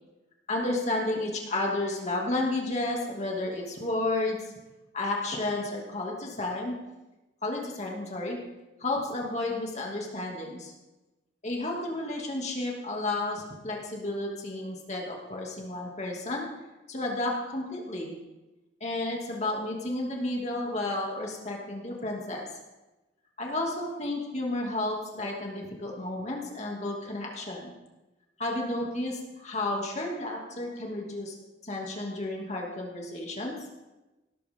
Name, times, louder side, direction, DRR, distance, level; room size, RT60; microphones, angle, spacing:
voice 1, 0.5-4.4 4.9-6.8 7.4-8.4 8.8-10.7 11.4-16.5 16.9-18.1 18.8-22.5 23.4-27.7 28.4-31.3 31.6-33.6, left 2 dB, 40° left, -1 dB, 2.6 m, -32 dB
18.0 x 13.0 x 3.8 m, 1.1 s
head